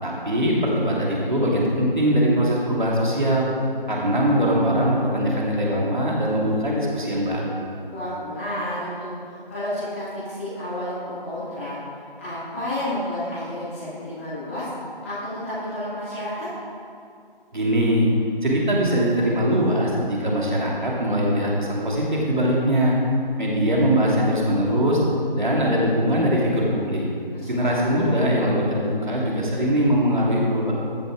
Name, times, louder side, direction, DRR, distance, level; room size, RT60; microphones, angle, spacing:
voice 1, 0.0-3.5 3.9-7.7 17.5-18.1 18.4-22.9 23.4-25.0 25.4-27.0 27.5-30.7, equal, 55° right, -3 dB, 2.7 m, -21 dB
voice 2, 7.9-11.7 12.2-14.6 15.0-16.5 27.3-28.3, left 1 dB, 15° left, -16 dB, 2.4 m, -31 dB
14.0 x 7.6 x 4.9 m, 2.4 s
figure-of-eight pair, 170°, 29 cm